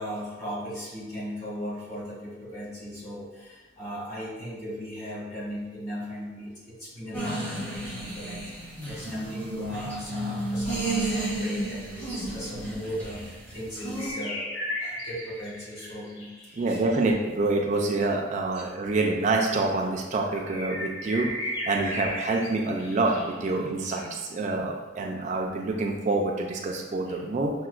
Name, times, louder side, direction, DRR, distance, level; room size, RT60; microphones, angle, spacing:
voice 1, 0.0-17.1 18.5-18.7 21.8-21.9 27.1-27.2, equal, 35° left, -7 dB, 1.5 m, -37 dB
sound 1, 7.1-14.1, right 1 dB, 10° left, 0.7 m, -32 dB
sound 2, 12.0-12.1 13.8-17.1 20.2-24.1, left 1 dB, 80° left, 0.8 m, -36 dB
voice 2, 16.6-21.3 21.7-27.5, right 2 dB, 40° right, 0 dB, 0.3 m, -27 dB
5.7 x 2.1 x 2.4 m, 1.2 s
head